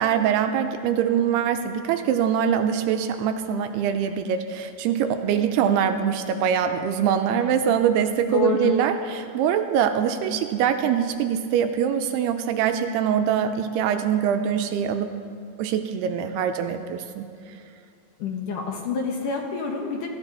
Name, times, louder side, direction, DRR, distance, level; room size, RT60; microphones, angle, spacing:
voice 1, 0.0-15.1 15.6-17.3, right 8 dB, 85° right, 7 dB, 2.6 m, -23 dB
voice 2, 8.3-8.7 18.2-20.1, left 6 dB, 65° left, 1 dB, 2.3 m, -27 dB
24.5 x 14.5 x 4.0 m, 2.4 s
omnidirectional pair, 4.9 m